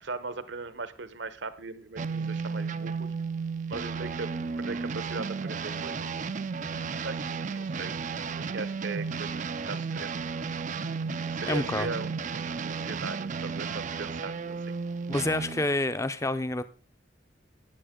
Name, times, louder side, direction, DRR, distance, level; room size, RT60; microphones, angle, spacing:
voice 1, 0.0-3.1 3.7-4.3 4.6-6.1 7.0-7.2 7.5-8.0 8.5-10.3 11.3-14.8, right 3 dB, 65° right, 13 dB, 1.0 m, -39 dB
sound 1, 2.0-15.7, right 5 dB, 40° right, 0.4 m, -33 dB
voice 2, 11.4-11.9 15.1-16.6, left 2 dB, 15° left, 12 dB, 0.6 m, -28 dB
14.0 x 9.4 x 3.7 m, 0.36 s
head